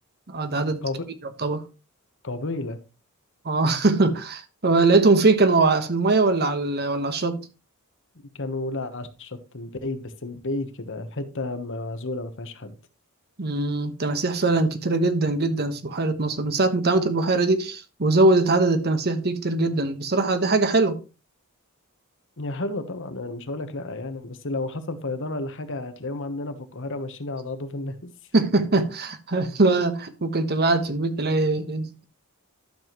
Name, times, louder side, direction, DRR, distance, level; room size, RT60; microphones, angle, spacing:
voice 1, 0.3-0.8 1.4-1.6 3.4-7.5 13.4-21.0 28.3-32.0, right 3 dB, 50° right, 1.2 m, -22 dB
voice 2, 2.2-2.8 8.3-12.8 22.4-28.1, left 2 dB, 60° left, 1.2 m, -32 dB
12.0 x 7.1 x 3.1 m
head